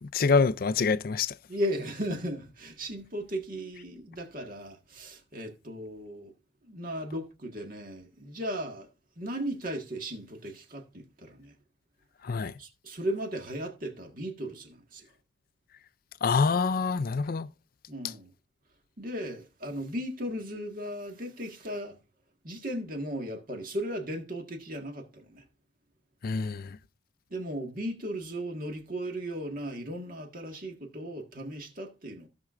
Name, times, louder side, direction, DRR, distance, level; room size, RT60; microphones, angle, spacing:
voice 1, 0.0-1.4 12.2-12.5 16.2-17.5 26.2-26.8, left 4 dB, 50° left, 0.4 m, -26 dB
voice 2, 1.5-6.3 6.6-8.9 9.2-11.5 12.6-15.1 17.9-18.3 19.0-22.0 22.4-25.4 27.3-32.3, equal, 45° right, 1.7 m, -36 dB
15.5 x 5.9 x 2.5 m
head